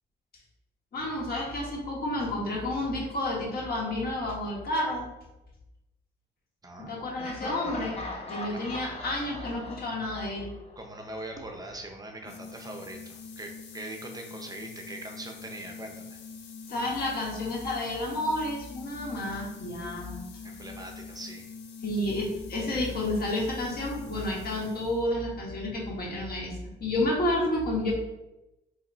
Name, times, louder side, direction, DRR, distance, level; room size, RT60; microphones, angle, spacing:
voice 1, 0.9-5.1 6.9-10.5 16.7-20.2 21.8-27.9, left 1 dB, 50° left, -3 dB, 1.2 m, -30 dB
voice 2, 6.6-7.0 8.3-8.6 10.8-16.2 20.4-21.5, right 2 dB, 20° right, 3 dB, 0.5 m, -42 dB
Laughter, 7.2-11.1, left 2 dB, 30° left, 0.7 m, -40 dB
sound 1, 12.2-25.2, left 5 dB, 65° left, 0.5 m, -44 dB
2.9 x 2.1 x 3.8 m, 0.96 s
cardioid pair, 90°, 20 cm